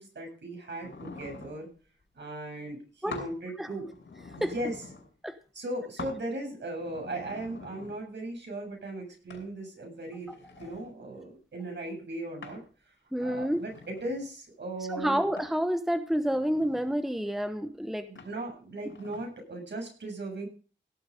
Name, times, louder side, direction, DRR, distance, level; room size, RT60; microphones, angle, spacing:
voice 1, 0.0-1.7 2.2-3.9 4.3-4.8 5.5-10.3 10.6-12.6 13.2-15.2 18.1-20.5, right 1 dB, 65° right, 1 dB, 7.5 m, -37 dB
sound 1, 0.8-1.6 3.1-3.4 3.8-5.1 6.0-6.2 6.7-8.0 9.3-9.5 10.1-10.9 12.4-12.7 13.3-14.3 15.4-15.6 16.2-17.0 18.2-18.4 18.8-19.3, left 4 dB, 75° left, 5.9 m, -45 dB
voice 2, 13.1-13.6 14.9-18.1, equal, ahead, 9 dB, 1.0 m, -29 dB
17.5 x 7.9 x 5.1 m, 0.38 s
wide cardioid pair, 90°, 20 cm